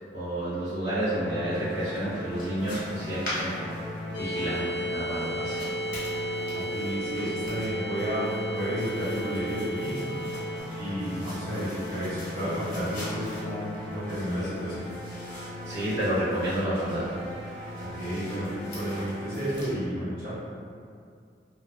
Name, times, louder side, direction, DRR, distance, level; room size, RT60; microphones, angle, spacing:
voice 1, 0.1-3.7 4.2-5.6 15.6-17.1, right 1 dB, 75° right, -13 dB, 0.9 m, -30 dB
sound 1, 1.0-19.9, left 1 dB, 5° left, 0.7 m, -39 dB
sound 2, 1.5-19.7, left 1 dB, 50° left, 0.8 m, -44 dB
sound 3, 4.1-10.6, right 1 dB, 75° left, 0.3 m, -33 dB
voice 2, 6.5-10.1 10.8-14.9 17.8-18.5 18.7-20.3, equal, 50° right, -12 dB, 1.0 m, -32 dB
2.7 x 2.0 x 2.2 m, 2.3 s
head